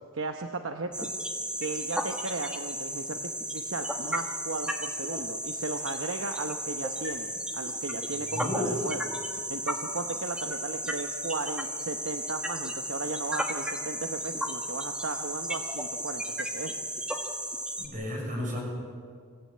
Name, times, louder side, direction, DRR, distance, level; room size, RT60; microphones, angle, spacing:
voice 1, 0.1-1.1 1.6-9.0 9.5-16.8, right 3 dB, 60° right, 5 dB, 0.9 m, -36 dB
sound 1, 0.9-17.9, equal, 5° right, 1.5 m, -34 dB
voice 2, 8.3-8.8 17.8-18.6, equal, 35° right, -1 dB, 6.3 m, -32 dB
26.0 x 15.0 x 8.6 m, 2.1 s
head